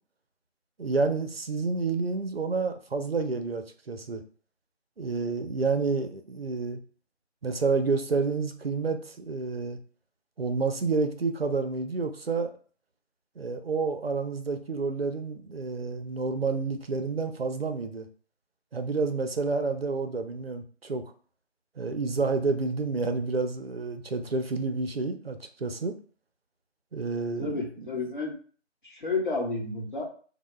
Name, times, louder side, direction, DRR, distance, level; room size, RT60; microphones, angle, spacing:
voice 1, 0.8-4.2 5.0-6.8 7.4-9.8 10.4-12.5 13.4-18.1 18.7-21.0 21.8-25.9 26.9-27.9, right 4 dB, 55° right, 7 dB, 0.5 m, -29 dB
voice 2, 27.4-28.3 28.8-30.0, left 3 dB, 45° left, -1 dB, 0.9 m, -31 dB
2.8 x 2.0 x 3.2 m, 0.42 s
figure-of-eight pair, 170°, 35 cm